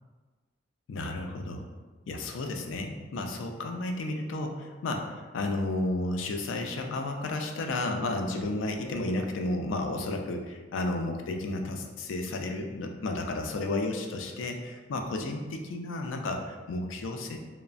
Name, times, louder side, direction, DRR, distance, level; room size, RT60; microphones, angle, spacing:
voice 1, 0.9-1.6 2.1-17.5, left 2 dB, 80° left, 4 dB, 0.3 m, -32 dB
3.1 x 2.0 x 2.4 m, 1.4 s
head